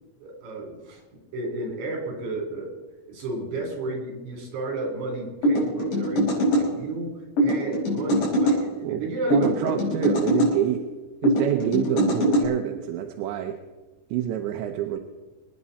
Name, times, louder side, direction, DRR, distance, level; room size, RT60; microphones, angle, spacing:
voice 1, 0.2-2.8 3.1-9.8, right 2 dB, 75° right, 1 dB, 6.0 m, -32 dB
sound 1, 5.4-6.7 7.4-8.6 9.3-10.5 11.2-12.5, equal, 80° left, 7.2 m, -22 dB
voice 2, 9.3-10.8 11.2-13.6 14.1-15.0, right 11 dB, 90° right, 4 dB, 3.2 m, -27 dB
25.0 x 10.0 x 4.2 m, 1.2 s
omnidirectional pair, 5.0 m